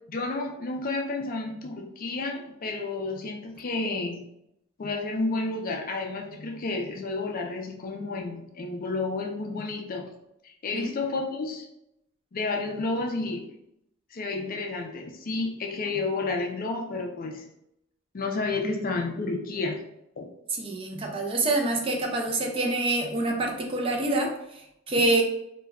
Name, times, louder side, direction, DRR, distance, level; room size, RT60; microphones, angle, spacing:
voice 1, 0.1-4.2 4.8-10.1 10.4-11.7 12.3-13.4 14.1-17.5 18.1-19.8 20.2-20.3 25.0-25.1, left 3 dB, 40° left, 2 dB, 0.4 m, -31 dB
voice 2, 20.5-25.2, right 2 dB, 25° right, 1 dB, 0.3 m, -26 dB
2.2 x 2.1 x 3.4 m, 0.79 s
head